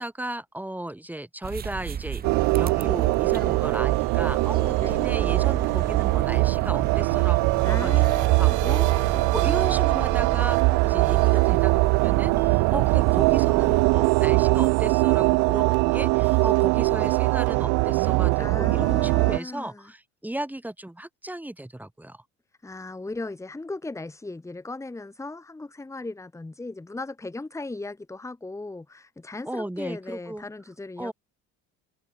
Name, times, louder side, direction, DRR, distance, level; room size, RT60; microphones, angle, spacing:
voice 1, 0.0-2.2 2.5-7.9 8.3-22.2 29.5-30.4 31.0-31.1, right 1 dB, 5° right, 5.8 m, -35 dB
sound 1, 1.4-13.9, right 8 dB, 30° right, 1.1 m, -34 dB
sound 2, 2.2-19.4, right 29 dB, 85° right, 0.5 m, -21 dB
voice 2, 7.6-9.5 18.4-19.9 22.6-31.1, left 2 dB, 10° left, 1.7 m, -37 dB
cardioid pair, 115°, 30 cm